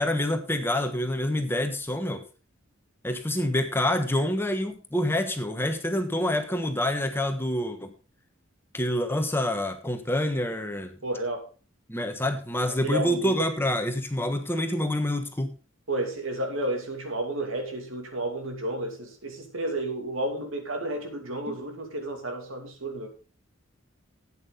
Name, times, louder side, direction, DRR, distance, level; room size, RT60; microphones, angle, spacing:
voice 1, 0.0-2.2 3.0-7.9 8.7-10.9 11.9-15.5 21.5-21.6, left 1 dB, 10° left, 6 dB, 1.2 m, -27 dB
voice 2, 11.0-11.5 12.8-13.5 15.9-23.1, right 1 dB, 85° right, 4 dB, 2.7 m, -31 dB
12.0 x 8.9 x 4.0 m, 0.35 s
head